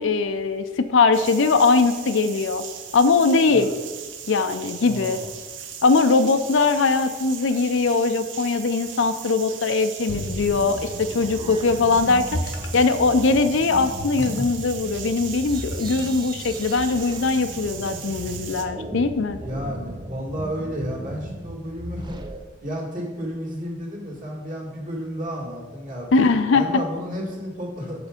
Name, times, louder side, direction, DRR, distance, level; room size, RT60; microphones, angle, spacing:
voice 1, 0.0-2.6 2.9-3.7 4.3-5.2 5.8-12.4 12.7-19.4 26.1-26.7, left 4 dB, 65° left, 9 dB, 0.5 m, -21 dB
sound 1, 1.1-18.6, right 8 dB, 65° right, 0.7 m, -38 dB
voice 2, 4.9-5.3 19.4-22.2 22.6-26.1 26.5-28.1, equal, 45° right, -2 dB, 1.9 m, -32 dB
sound 2, 10.1-10.6 12.0-12.9 13.8-14.6 15.5-16.4, left 1 dB, 85° left, 1.0 m, -33 dB
sound 3, 10.1-22.4, right 1 dB, 25° right, 0.5 m, -37 dB
7.2 x 4.9 x 5.1 m, 1.4 s
head